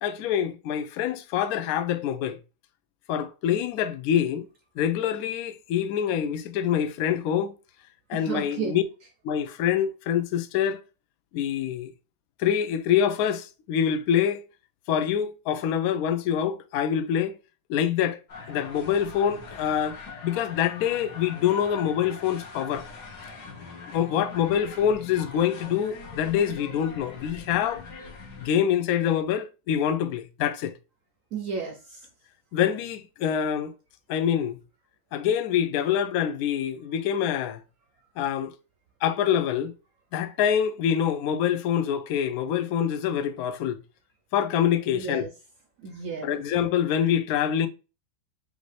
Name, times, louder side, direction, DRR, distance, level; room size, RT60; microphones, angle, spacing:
voice 1, 0.0-2.4 3.1-4.5 4.8-7.5 8.1-8.8 9.2-10.8 11.3-11.9 12.4-14.4 14.9-17.4 17.7-18.2 18.5-20.0 20.2-22.8 23.9-27.8 28.4-30.7 32.5-33.7 34.1-34.6 35.1-37.6 38.2-38.5 39.0-39.7 40.1-43.8 44.3-45.3 46.2-47.7, left 9 dB, 80° left, 0.8 m, -25 dB
voice 2, 8.1-8.8 31.3-32.0 44.9-45.3 45.8-46.4, right 5 dB, 70° right, 0.7 m, -33 dB
sound 1, 18.3-28.5, left 4 dB, 65° left, 1.5 m, -42 dB
5.0 x 2.6 x 3.2 m
omnidirectional pair, 2.1 m